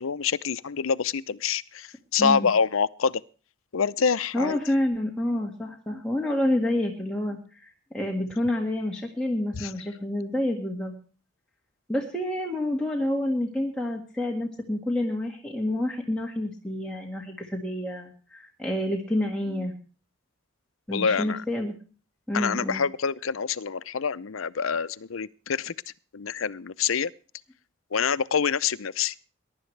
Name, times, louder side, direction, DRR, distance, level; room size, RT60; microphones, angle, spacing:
voice 1, 0.0-3.1 3.7-4.6 9.6-9.7 20.9-21.4 22.3-25.7 26.1-27.1 27.9-29.1, left 6 dB, 80° left, 0.6 m, -26 dB
voice 2, 4.3-10.9 11.9-19.7 20.9-21.8 22.3-22.8, left 1 dB, 5° left, 1.8 m, -28 dB
22.0 x 11.5 x 3.3 m
head